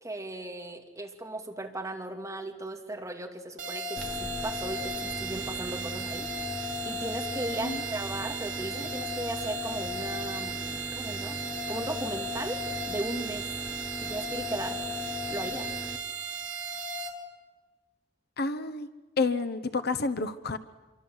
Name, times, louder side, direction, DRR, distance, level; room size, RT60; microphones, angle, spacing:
voice 1, 0.0-6.3 6.8-12.6 12.9-13.5 14.0-14.9 15.3-15.7, right 1 dB, 15° right, 2 dB, 2.7 m, -37 dB
sound 1, 3.6-17.1, right 2 dB, 75° right, 3.5 m, -35 dB
sound 2, 4.0-16.0, left 1 dB, 5° left, 1.4 m, -40 dB
voice 2, 18.4-18.9 19.2-20.6, left 3 dB, 55° left, 10 dB, 1.0 m, -29 dB
26.5 x 24.0 x 8.0 m, 1.2 s
head